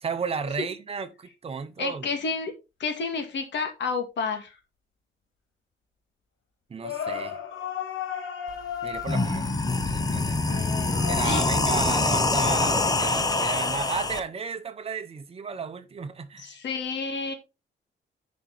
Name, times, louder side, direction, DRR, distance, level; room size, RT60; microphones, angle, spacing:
voice 1, 0.0-2.1 6.7-7.4 8.8-9.5 9.8-10.4 11.1-16.6, right 5 dB, 30° right, 0.9 m, -33 dB
voice 2, 1.8-2.5 2.8-4.6 10.5-11.0 11.2-11.5 16.4-17.3, left 4 dB, 65° left, 2.2 m, -30 dB
sound 1, 6.8-9.5 10.9-11.9, left 8 dB, 90° left, 2.4 m, -34 dB
sound 2, 8.5-8.6 8.9-14.2, left 3 dB, 20° left, 0.9 m, -25 dB
10.5 x 5.3 x 3.9 m
wide cardioid pair, 170°, 20 cm